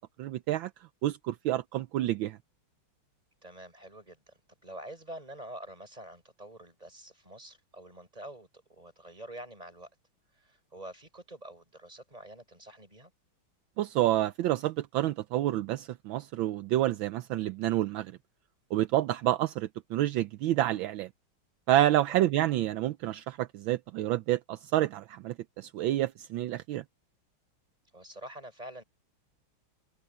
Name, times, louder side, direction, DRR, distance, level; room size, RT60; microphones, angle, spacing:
voice 1, 0.2-0.7 1.0-2.4 13.8-18.1 18.7-21.1 21.7-26.8, right 14 dB, 75° right, 1.4 m, -28 dB
voice 2, 3.4-9.9 10.3-13.1 22.1-22.3 27.9-28.8, right 1 dB, 15° right, 6.8 m, -47 dB
omnidirectional pair, 2.3 m